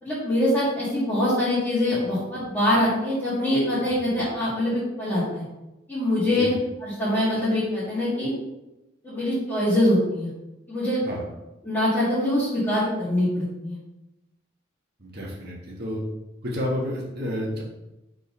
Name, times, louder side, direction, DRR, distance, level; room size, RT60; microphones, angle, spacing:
voice 1, 0.0-5.4 5.9-8.3 9.0-10.3 10.7-11.0 11.6-13.8, left 1 dB, 10° left, -12 dB, 1.9 m, -24 dB
voice 2, 6.2-6.5 11.0-11.2 15.0-16.0 16.4-17.6, equal, 55° right, -3 dB, 1.4 m, -30 dB
4.6 x 3.9 x 5.3 m, 0.96 s
head